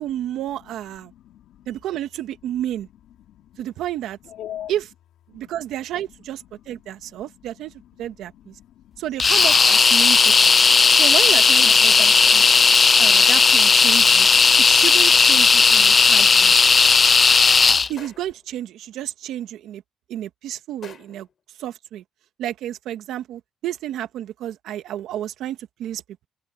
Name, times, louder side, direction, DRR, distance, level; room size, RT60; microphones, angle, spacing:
voice 1, 0.0-1.1 1.7-2.9 3.6-4.2 4.7-4.9 5.3-7.7 8.0-8.6 9.0-10.6 10.9-12.6 13.0-14.3 14.6-16.5 17.9-19.8 20.1-21.3 21.6-22.0 22.4-26.3, right 12 dB, 85° right, 1.8 m, -31 dB
voice 2, 1.1-1.7 3.3-3.5 4.3-4.7 5.4-5.5 7.0-7.3 8.3-8.8 10.6-11.0 11.6-12.1 12.5-13.0 14.3-14.7, left 11 dB, 80° left, 3.1 m, -41 dB
sound 1, 9.2-17.9, left 5 dB, 35° left, 0.6 m, -15 dB
sound 2, 12.3-12.8 15.1-15.6 18.0-18.5 20.8-21.3, left 7 dB, 55° left, 4.4 m, -45 dB
cardioid pair, 90°, 0 cm